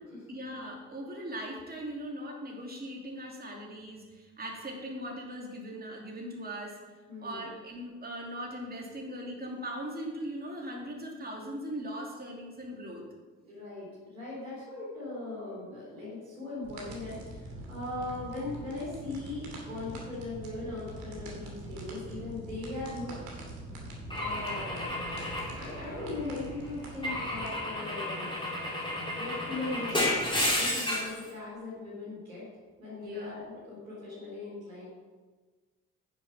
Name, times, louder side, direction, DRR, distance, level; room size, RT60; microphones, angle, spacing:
voice 1, 0.3-6.8 7.2-13.0 25.2-25.6 28.6-29.3 33.0-33.4, equal, 25° right, -1 dB, 2.8 m, -40 dB
voice 2, 7.1-7.5 13.4-23.4 24.2-25.0 25.5-28.3 29.1-32.4 32.8-34.9, left 2 dB, 85° right, -5 dB, 3.7 m, -39 dB
sound 1, 16.6-27.5, right 1 dB, 60° right, 2.5 m, -44 dB
Car / Engine / Glass, 24.1-26.3 27.0-31.2, left 1 dB, 10° left, 4.0 m, -32 dB
10.0 x 7.3 x 5.9 m, 1.3 s
figure-of-eight pair, 45°, 39 cm